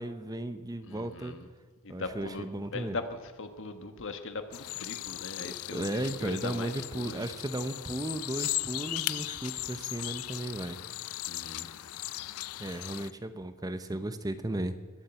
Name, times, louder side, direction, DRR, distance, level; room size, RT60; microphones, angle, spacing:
voice 1, 0.0-1.3 1.9-3.0 5.7-10.8 12.6-14.8, right 1 dB, 15° right, 10 dB, 0.8 m, -35 dB
voice 2, 0.8-1.5 1.8-7.3 11.3-11.7, left 3 dB, 60° left, 8 dB, 1.4 m, -40 dB
sound 1, 4.5-13.1, left 16 dB, 75° left, 0.4 m, -37 dB
21.5 x 7.4 x 8.1 m, 1.3 s
head